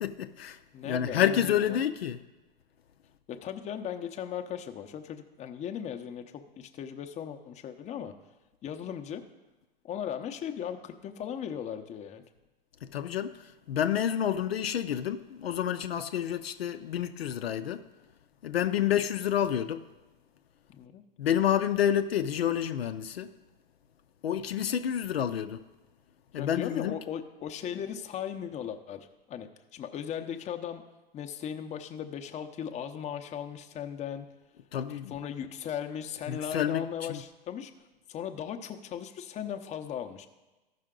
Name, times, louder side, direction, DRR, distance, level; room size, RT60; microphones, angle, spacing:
voice 1, 0.0-0.6 0.8-2.2 12.8-17.9 18.4-19.9 21.2-23.3 24.2-25.6 26.3-27.0 34.7-35.2 36.3-37.2, left 10 dB, 80° left, 0.6 m, -29 dB
voice 2, 0.7-1.8 3.3-8.1 8.6-9.2 9.8-12.2 20.7-21.0 26.4-30.8 31.1-34.3 35.1-37.7 38.1-40.3, left 9 dB, 25° left, 0.7 m, -37 dB
14.0 x 5.7 x 3.7 m
hypercardioid pair, 105°, 30 cm